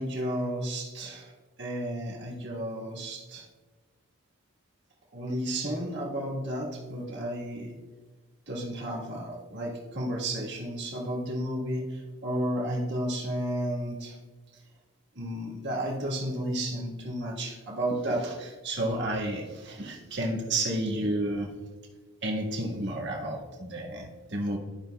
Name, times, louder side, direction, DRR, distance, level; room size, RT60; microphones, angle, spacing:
voice 1, 0.0-1.3 1.6-3.5 5.1-7.8 8.5-14.2 15.1-21.5 22.2-24.6, right 1 dB, 50° right, -1 dB, 1.5 m, -32 dB
13.5 x 5.2 x 2.3 m, 1.3 s
head